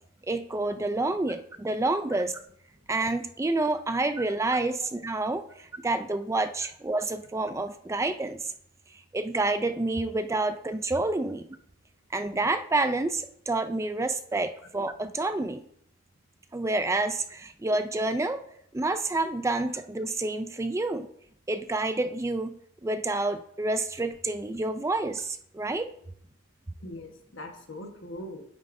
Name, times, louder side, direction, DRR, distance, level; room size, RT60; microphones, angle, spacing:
voice 1, 0.3-2.3 2.9-8.4 9.1-11.4 12.1-15.7 16.5-18.4 18.7-21.1 21.5-25.9, right 2 dB, 15° right, 9 dB, 0.4 m, -28 dB
voice 2, 3.9-4.4 4.8-4.9 5.4-5.5 26.8-28.4, left 1 dB, 65° left, 3 dB, 1.4 m, -42 dB
8.9 x 8.4 x 2.7 m, 0.67 s
head